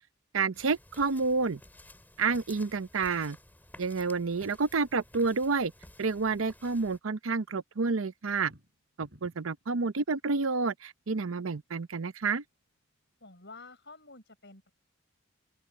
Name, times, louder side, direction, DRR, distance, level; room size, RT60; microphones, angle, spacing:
voice 1, 0.3-1.6 2.2-3.4 3.8-5.7 6.0-8.5 9.0-12.4, right 4 dB, 85° right, 0.7 m, -29 dB
sound 1, 0.5-7.0, left 1 dB, 10° left, 3.1 m, -54 dB
sound 2, 8.4-9.6, equal, 55° right, 7.2 m, -55 dB
voice 2, 13.2-14.7, left 3 dB, 60° left, 5.9 m, -50 dB
open air
head